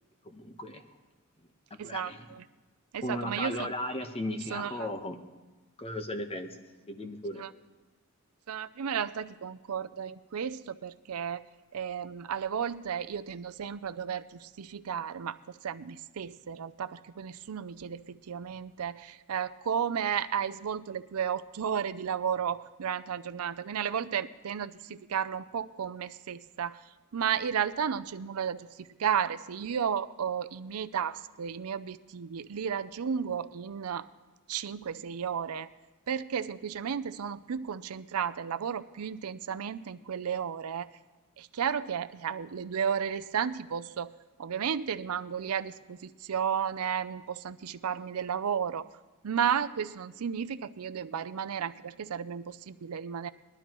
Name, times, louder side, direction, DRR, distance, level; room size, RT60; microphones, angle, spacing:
voice 1, 0.2-0.8 1.8-2.3 3.0-5.2 5.8-6.5 6.9-7.4, left 1 dB, 25° left, 6 dB, 1.0 m, -36 dB
voice 2, 1.8-2.4 2.9-3.7 4.5-4.9 7.4-7.5 8.5-11.4 11.7-26.8 27.1-34.1 34.5-35.7 36.1-40.9 41.4-44.1 44.4-48.9 49.2-53.3, right 7 dB, 85° right, 13 dB, 0.5 m, -33 dB
20.5 x 12.5 x 3.0 m, 1.2 s
head